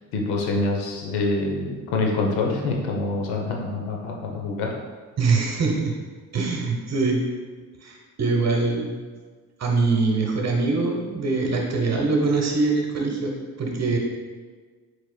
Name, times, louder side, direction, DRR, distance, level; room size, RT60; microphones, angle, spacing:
voice 1, 0.1-4.7, left 3 dB, 90° left, 0 dB, 0.8 m, -25 dB
voice 2, 5.2-5.9 6.3-7.2 7.8-8.9 9.6-14.0, right 3 dB, 45° right, 1 dB, 1.0 m, -23 dB
4.8 x 4.2 x 2.2 m, 1.5 s
supercardioid pair, 70°, 38 cm